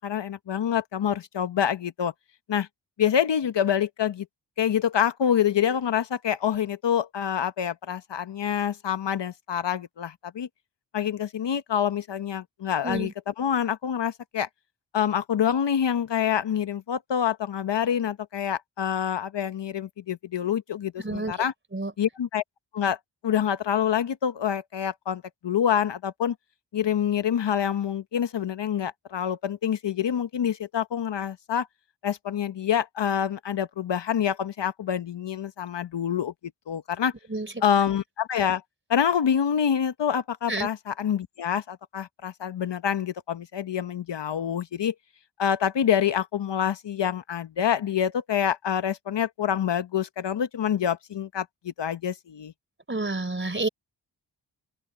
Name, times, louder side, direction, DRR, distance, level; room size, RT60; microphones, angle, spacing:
voice 1, 0.0-2.1 2.5-2.7 3.0-4.3 4.6-10.5 10.9-14.5 14.9-21.5 22.0-22.4 22.7-23.0 23.2-26.3 26.7-31.7 32.0-36.3 36.7-37.1 37.6-38.6 38.9-44.9 45.4-52.5, left 8 dB, 65° left, 1.0 m, -26 dB
voice 2, 21.0-21.3 21.7-21.9 37.3-37.5 40.5-40.7 52.9-53.7, right 2 dB, 25° right, 3.7 m, -29 dB
cardioid pair, 55°, 46 cm